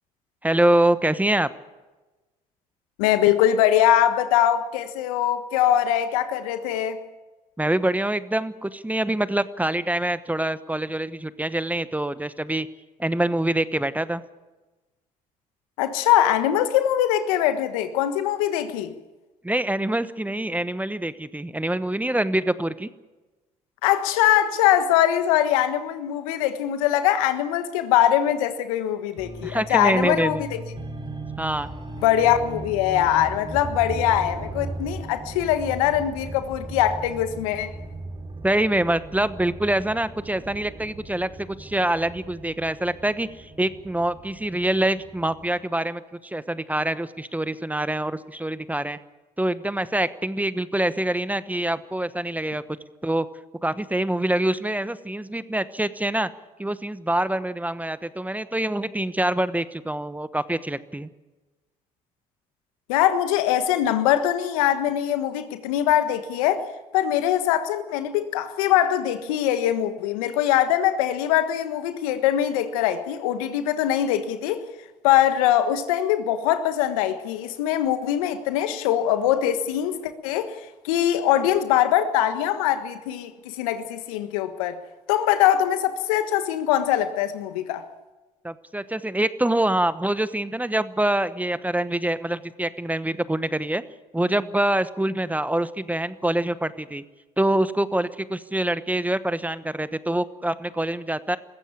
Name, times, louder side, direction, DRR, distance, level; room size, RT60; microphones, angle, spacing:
voice 1, 0.4-1.5 7.6-12.7 13.0-14.2 19.4-22.9 29.4-30.4 31.4-31.7 38.4-49.0 49.4-52.6 53.0-53.3 53.6-56.3 56.6-61.1 88.4-93.8 94.1-97.0 97.4-101.4, right 1 dB, 10° right, 1.1 m, -25 dB
voice 2, 3.0-7.0 15.8-18.9 23.8-30.6 32.0-37.7 62.9-66.7 66.9-74.7 75.0-84.8 85.1-87.8, left 11 dB, 85° left, 1.5 m, -22 dB
sound 1, 29.2-45.5, right 2 dB, 30° right, 4.4 m, -38 dB
21.0 x 15.0 x 8.6 m
hypercardioid pair, 60°, 18 cm